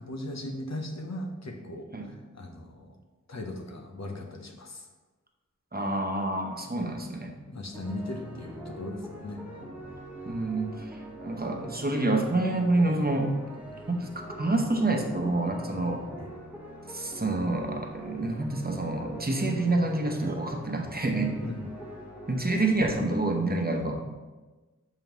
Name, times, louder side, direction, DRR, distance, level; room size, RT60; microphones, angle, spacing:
voice 1, 0.0-3.0 3.3-4.9 7.5-9.7 16.2-16.3 21.4-21.7, left 1 dB, 65° left, 3 dB, 0.8 m, -38 dB
voice 2, 5.7-7.4 10.2-13.3 13.9-16.0 16.9-21.4 22.3-23.9, right 2 dB, 30° right, 2 dB, 0.9 m, -28 dB
sound 1, 7.7-22.7, right 1 dB, 5° right, 1.2 m, -43 dB
6.9 x 5.4 x 3.0 m, 1.2 s
wide cardioid pair, 50°, 29 cm